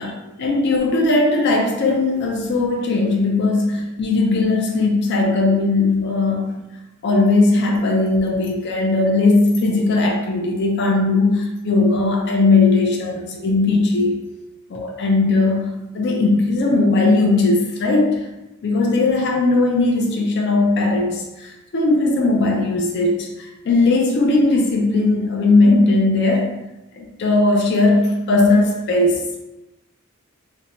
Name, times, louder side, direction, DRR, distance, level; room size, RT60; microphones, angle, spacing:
voice 1, 0.0-6.5 7.0-14.2 14.7-18.3 18.6-26.5 26.9-29.3, left 2 dB, 50° left, 0 dB, 0.4 m, -18 dB
2.9 x 2.1 x 2.6 m, 0.99 s
head